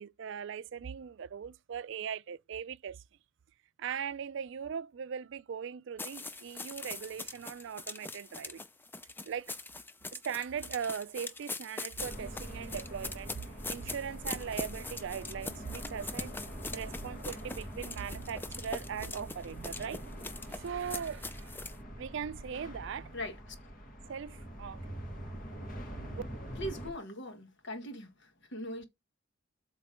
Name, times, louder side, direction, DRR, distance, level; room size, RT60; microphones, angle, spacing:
voice 1, 0.0-3.0 3.8-8.6 9.2-9.5 10.1-13.4 13.7-16.4 16.7-20.1 20.5-21.6 21.9-23.2 24.1-24.8 26.1-26.2, right 7 dB, 65° right, 0.4 m, -39 dB
sound 1, 6.0-21.8, left 3 dB, 10° left, 0.4 m, -42 dB
sound 2, 12.0-26.9, equal, 45° left, 1.8 m, -44 dB
voice 2, 26.6-28.1 28.5-28.8, equal, 65° left, 1.3 m, -40 dB
7.9 x 3.0 x 5.0 m
head